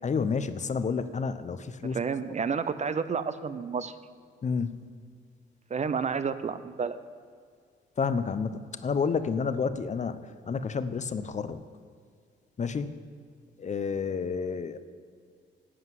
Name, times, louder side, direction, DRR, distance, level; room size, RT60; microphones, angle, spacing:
voice 1, 0.0-2.0 4.4-4.8 8.0-10.2 10.5-11.6 12.6-12.9 13.6-14.8, left 5 dB, 35° left, 12 dB, 0.7 m, -30 dB
voice 2, 1.9-3.9 5.7-7.0, right 5 dB, 35° right, 12 dB, 0.6 m, -30 dB
11.0 x 7.9 x 7.6 m, 2.1 s
cardioid pair, 90°, 20 cm